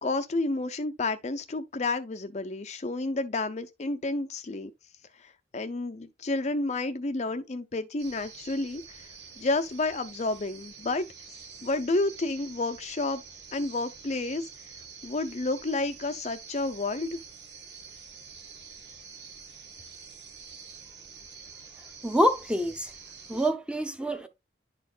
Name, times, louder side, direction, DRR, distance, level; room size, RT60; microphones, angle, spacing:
voice 1, 0.0-4.7 5.2-9.1 9.4-13.2 13.5-14.5 15.0-17.2, left 2 dB, 40° left, 0.5 m, -30 dB
sound 1, 8.0-23.5, right 6 dB, 90° right, 2.4 m, -47 dB
voice 2, 22.0-22.9 23.3-24.3, equal, 5° right, 0.8 m, -26 dB
11.0 x 4.3 x 2.4 m
head